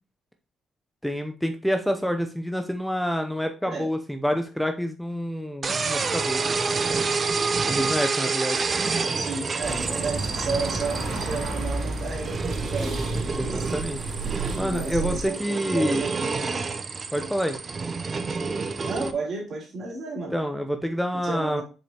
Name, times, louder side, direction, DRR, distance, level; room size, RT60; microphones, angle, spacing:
voice 1, 1.0-6.5 7.7-8.6 13.3-14.1 14.6-16.0 17.1-17.6 20.3-21.6, equal, ahead, 6 dB, 0.6 m, -27 dB
sound 1, 5.6-19.1, right 4 dB, 40° right, 0.6 m, -28 dB
voice 2, 9.2-13.8 14.6-16.7 18.8-20.4 21.2-21.6, right 3 dB, 55° right, -1 dB, 3.3 m, -33 dB
sound 2, 9.6-15.3, right 2 dB, 70° right, 3.1 m, -32 dB
6.7 x 4.9 x 2.9 m, 0.35 s
cardioid pair, 90°, 0 cm